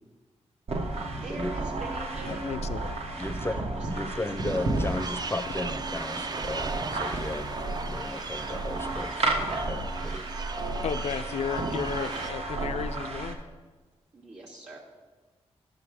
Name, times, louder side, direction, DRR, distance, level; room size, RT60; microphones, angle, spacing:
sound 1, 0.7-13.3, right 2 dB, 65° right, 1.0 m, -32 dB
voice 1, 1.2-2.6 3.5-4.0 14.1-14.8, right 2 dB, 90° right, -6 dB, 1.7 m, -41 dB
voice 2, 2.2-2.9 10.8-13.4, left 7 dB, 75° left, 11 dB, 0.4 m, -33 dB
voice 3, 3.2-3.6 3.9-9.4 9.7-10.2, left 2 dB, 20° left, 10 dB, 0.5 m, -35 dB
sound 2, 4.4-12.3, right 4 dB, 35° right, 0.4 m, -39 dB
10.5 x 5.1 x 4.9 m, 1.3 s
cardioid pair, 70°, 11 cm